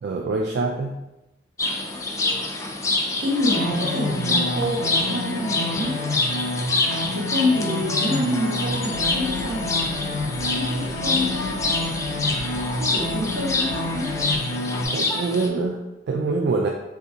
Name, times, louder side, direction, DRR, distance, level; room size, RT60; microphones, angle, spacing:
voice 1, 0.0-0.9 14.9-16.7, right 3 dB, 60° right, 1 dB, 0.3 m, -25 dB
sound 1, 1.6-15.5, left 2 dB, 15° left, 0.3 m, -27 dB
voice 2, 3.2-6.0 7.1-9.7 10.6-11.8 12.8-14.2, left 1 dB, 80° right, -4 dB, 1.0 m, -27 dB
sound 2, 3.5-14.8, left 2 dB, 70° left, 0.6 m, -29 dB
sound 3, 8.9-14.4, equal, 45° right, 0.7 m, -41 dB
3.4 x 2.8 x 2.7 m, 0.97 s
head